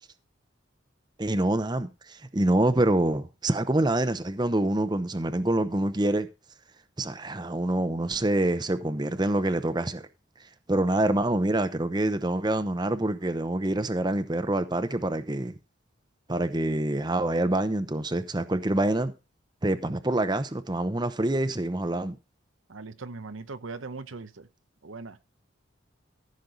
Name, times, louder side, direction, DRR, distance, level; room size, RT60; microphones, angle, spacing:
voice 1, 1.2-6.3 7.0-10.0 10.7-15.5 16.3-19.1 19.6-22.2, right 1 dB, 20° right, 0.8 m, -26 dB
voice 2, 22.7-24.5 24.8-25.2, right 3 dB, 85° right, 0.9 m, -39 dB
14.5 x 6.6 x 4.0 m
head